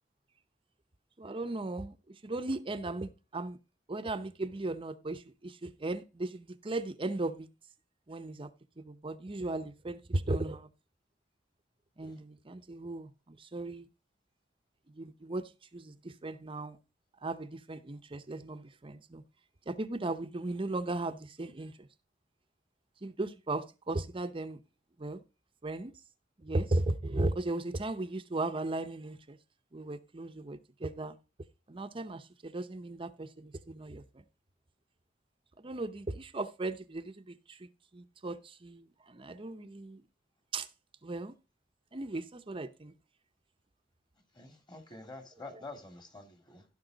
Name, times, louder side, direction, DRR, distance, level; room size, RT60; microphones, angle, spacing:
voice 1, 1.2-1.9 2.2-3.6 3.9-7.5 8.1-8.5 8.8-10.7 12.0-13.9 14.9-16.8 17.2-19.2 19.7-21.9 23.0-24.6 25.0-25.2 25.6-25.9 26.4-29.4 29.7-31.2 31.7-34.2 35.6-40.0 40.5-40.7 41.0-41.3 41.9-42.9, right 2 dB, 30° right, 0.7 m, -37 dB
voice 2, 44.3-46.6, left 2 dB, 25° left, 2.1 m, -48 dB
15.5 x 5.5 x 3.9 m
head